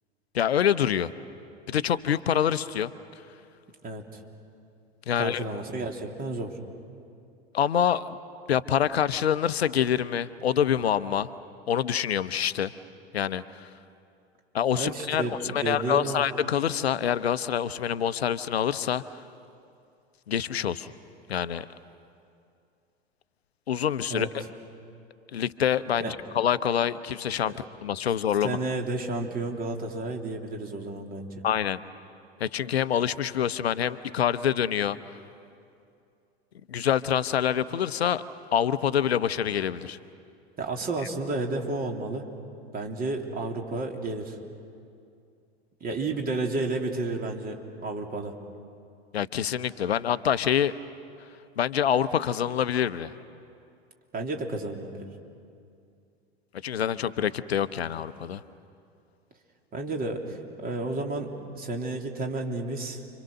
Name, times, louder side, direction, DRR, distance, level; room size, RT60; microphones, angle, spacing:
voice 1, 0.3-1.1 1.7-2.9 5.1-5.4 7.5-8.2 8.5-11.3 11.7-12.7 13.1-13.7 14.5-19.2 20.3-20.9 21.3-21.7 23.7-24.4 25.3-27.5 27.8-28.6 31.4-31.8 32.4-35.0 36.7-38.2 38.5-40.0 49.1-50.7 51.6-53.1 56.6-58.4, left 9 dB, 75° left, 14 dB, 0.8 m, -26 dB
voice 2, 5.2-6.5 14.7-16.2 24.1-24.3 26.0-26.1 28.4-31.3 40.6-42.3 42.7-44.4 45.8-48.3 54.1-55.1 59.7-61.3 61.5-63.0, right 2 dB, 25° right, 2 dB, 3.3 m, -31 dB
30.0 x 25.0 x 6.6 m, 2.5 s
figure-of-eight pair, 85°, 32 cm